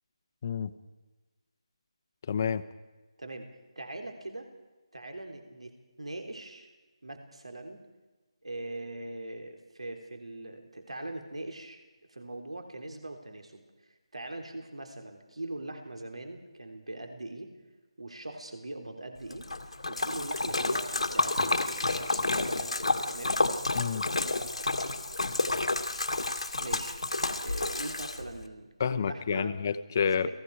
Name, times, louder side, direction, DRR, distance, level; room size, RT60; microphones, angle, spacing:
voice 1, 2.3-2.6 23.7-24.1 28.8-30.3, left 7 dB, 30° left, 13 dB, 1.0 m, -29 dB
voice 2, 3.2-3.5 3.8-4.5 4.9-6.7 7.0-7.8 8.4-11.8 12.1-17.5 18.0-19.5 19.9-23.4 26.6-27.0 27.3-29.6 30.1-30.3, right 2 dB, 90° right, 5 dB, 3.6 m, -41 dB
Splash splatter, 19.3-28.4, left 2 dB, 85° left, 2.1 m, -30 dB
29.5 x 18.5 x 4.8 m, 1.2 s
figure-of-eight pair, 165°, 3 cm